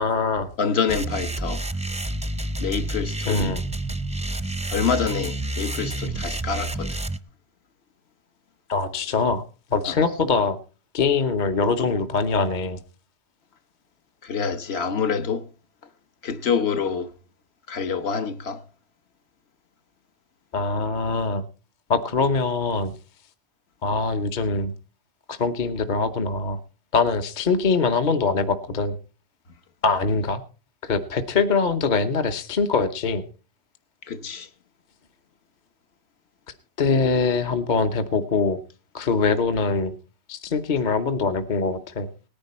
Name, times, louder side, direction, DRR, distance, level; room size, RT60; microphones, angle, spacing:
voice 1, 0.0-0.5 3.3-3.6 8.7-9.4 9.7-10.6 10.9-12.8 20.5-21.4 21.9-22.9 23.8-24.7 25.3-26.6 26.9-29.0 29.8-30.4 30.8-33.2 36.8-38.6 38.9-39.9 40.3-42.1, left 4 dB, 45° left, 0.9 m, -23 dB
voice 2, 0.6-1.6 2.6-3.5 4.7-7.0 9.9-10.0 14.2-15.4 16.2-17.1 17.7-18.6 34.1-34.5, left 6 dB, 65° left, 1.2 m, -26 dB
sound 1, 0.9-7.2, right 2 dB, 5° right, 0.6 m, -29 dB
18.0 x 10.0 x 4.3 m
omnidirectional pair, 1.2 m